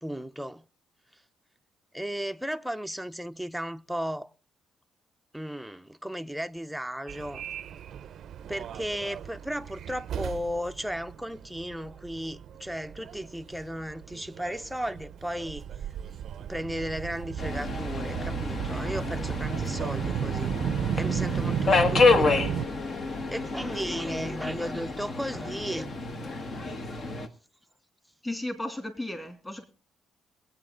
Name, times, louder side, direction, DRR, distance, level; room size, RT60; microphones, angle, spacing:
voice 1, 0.0-0.6 1.9-4.3 5.3-7.4 8.5-15.6 16.5-20.5 21.0-22.5 23.3-25.9, equal, ahead, 0.6 m, -35 dB
Subway metro underground, 7.1-22.7, right 9 dB, 70° right, 0.6 m, -34 dB
Subway metro underground 2, 17.4-27.3, left 3 dB, 50° left, 1.4 m, -29 dB
voice 2, 28.2-29.6, left 1 dB, 15° left, 2.6 m, -34 dB
22.0 x 8.4 x 3.8 m
cardioid pair, 90°, 0 cm